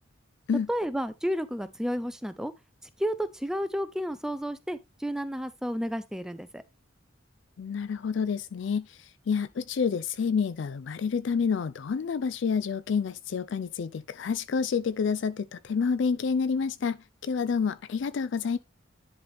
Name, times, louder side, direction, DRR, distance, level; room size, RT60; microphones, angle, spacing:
voice 1, 0.7-2.5 3.0-6.6, equal, 5° right, 0.4 m, -31 dB
voice 2, 7.6-18.6, left 6 dB, 65° left, 0.4 m, -29 dB
10.5 x 4.0 x 3.4 m
head